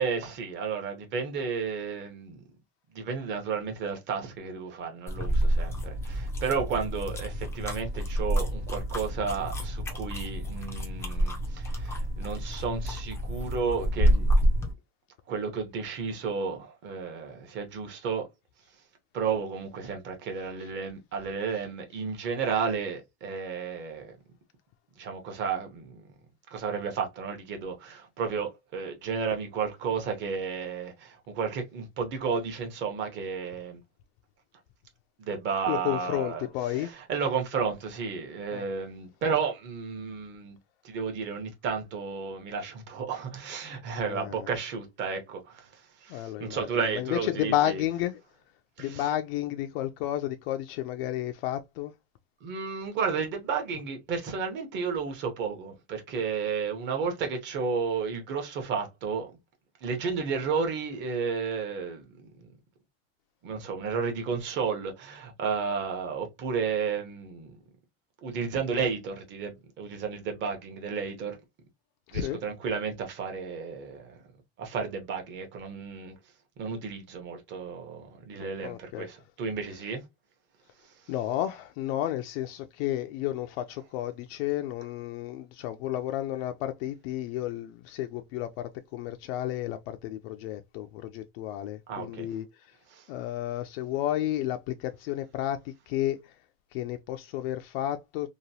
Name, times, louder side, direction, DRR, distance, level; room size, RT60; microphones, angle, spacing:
voice 1, 0.0-2.4 2.9-14.3 15.3-18.3 19.1-24.1 25.0-26.0 26.5-33.8 35.2-36.5 36.7-40.6 40.8-47.8 48.8-49.1 52.4-59.3 59.8-62.5 63.4-67.6 68.2-71.4 72.1-74.2 74.6-76.1 76.6-80.0 80.8-81.1 91.9-92.3 92.9-93.1, right 5 dB, 35° right, 0.9 m, -32 dB
sound 1, 5.1-14.7, equal, 10° left, 0.4 m, -28 dB
voice 2, 35.7-36.9 38.5-38.6 44.0-44.5 46.1-48.2 48.8-51.9 72.1-72.4 78.4-79.1 81.1-92.7 93.1-96.3 96.7-98.3, left 13 dB, 65° left, 0.5 m, -32 dB
3.0 x 2.2 x 2.7 m
supercardioid pair, 155°, 32 cm